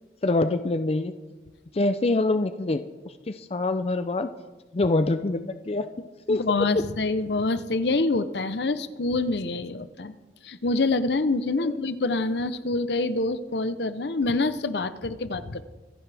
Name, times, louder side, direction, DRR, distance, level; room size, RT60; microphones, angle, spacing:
voice 1, 0.2-1.1 1.7-2.8 3.3-4.3 4.7-5.9 6.3-6.4 11.6-11.7, left 2 dB, 35° left, 10 dB, 0.5 m, -25 dB
voice 2, 6.3-10.1 10.4-15.6, left 3 dB, 70° left, 13 dB, 0.7 m, -26 dB
25.5 x 10.5 x 3.4 m, 1.2 s
head